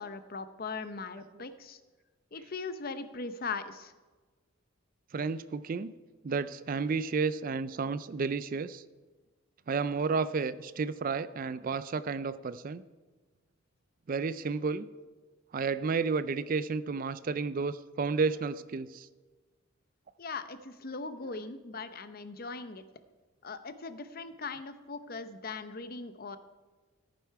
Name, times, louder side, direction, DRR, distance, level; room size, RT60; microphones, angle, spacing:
voice 1, 0.0-1.8 2.3-3.9 20.2-22.8 23.4-26.4, left 4 dB, 45° left, 11 dB, 0.7 m, -39 dB
voice 2, 5.1-5.9 6.2-8.8 9.7-12.8 14.1-14.8 15.5-19.1, right 4 dB, 40° right, 15 dB, 0.4 m, -31 dB
14.5 x 9.4 x 4.6 m, 1.3 s
head